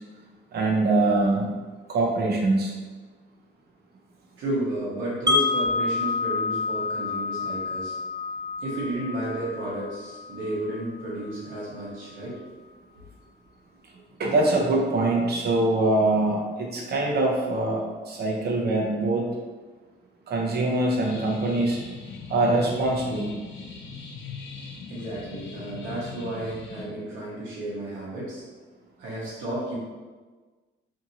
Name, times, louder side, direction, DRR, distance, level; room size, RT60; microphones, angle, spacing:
voice 1, 0.5-1.5 1.9-2.7 14.2-19.3 20.3-21.8 22.3-23.3, right 2 dB, 55° right, -1 dB, 0.7 m, -23 dB
voice 2, 4.4-8.0 8.6-12.4 12.9-13.1 24.9-28.4 29.0-29.7, right 1 dB, 75° right, -7 dB, 1.0 m, -32 dB
Wind chime, 5.3-11.2, left 3 dB, 20° right, 0.4 m, -28 dB
sound 1, 21.0-26.8, left 5 dB, 70° left, 0.6 m, -40 dB
2.7 x 2.6 x 2.8 m, 1.3 s
cardioid pair, 90°, 20 cm